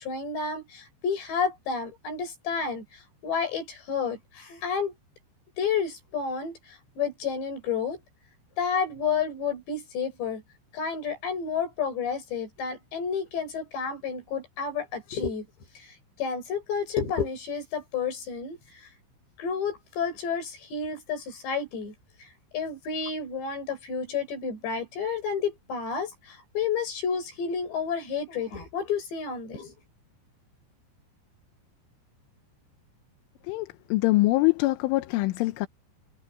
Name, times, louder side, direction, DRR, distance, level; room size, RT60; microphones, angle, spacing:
voice 1, 0.0-4.9 5.6-8.0 8.6-10.4 10.7-15.5 15.8-18.6 19.4-21.9 22.2-22.3 22.5-29.7, left 6 dB, 60° left, 7.9 m, -30 dB
voice 2, 33.5-35.7, left 20 dB, 80° left, 3.4 m, -24 dB
omnidirectional pair, 5.6 m